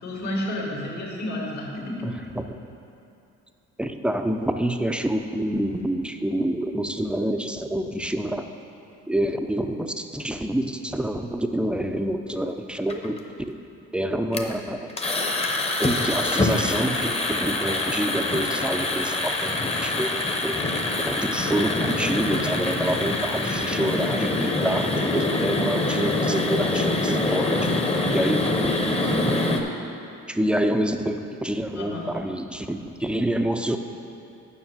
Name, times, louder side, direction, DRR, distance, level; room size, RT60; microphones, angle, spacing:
voice 1, 0.0-2.1 31.7-32.1, left 1 dB, 65° left, -2 dB, 2.2 m, -31 dB
voice 2, 2.0-2.6 3.8-8.5 9.1-13.2 13.9-14.9 15.8-20.7 21.0-27.8 28.1-29.5 30.3-33.8, right 1 dB, 5° right, 7 dB, 0.4 m, -27 dB
sound 1, 12.9-13.2 14.3-14.5 14.9-29.6, left 2 dB, 20° left, 0.8 m, -25 dB
7.1 x 5.7 x 7.5 m, 2.7 s
cardioid pair, 90°, 30 cm